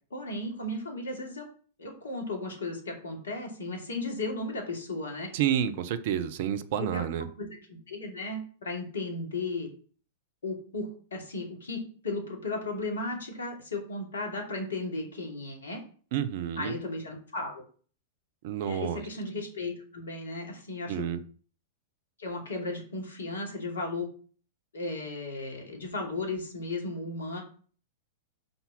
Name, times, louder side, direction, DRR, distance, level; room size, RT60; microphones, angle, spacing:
voice 1, 0.1-1.4 1.8-5.3 6.8-7.1 7.4-9.7 10.4-15.8 16.6-17.6 18.6-21.2 22.2-24.1 24.7-27.4, left 2 dB, 70° left, 1 dB, 2.7 m, -35 dB
voice 2, 5.3-7.3 16.1-16.7 18.4-19.0 20.9-21.2, right 10 dB, 50° right, 12 dB, 0.8 m, -29 dB
5.7 x 5.4 x 5.8 m, 0.42 s
figure-of-eight pair, 100°, 0 cm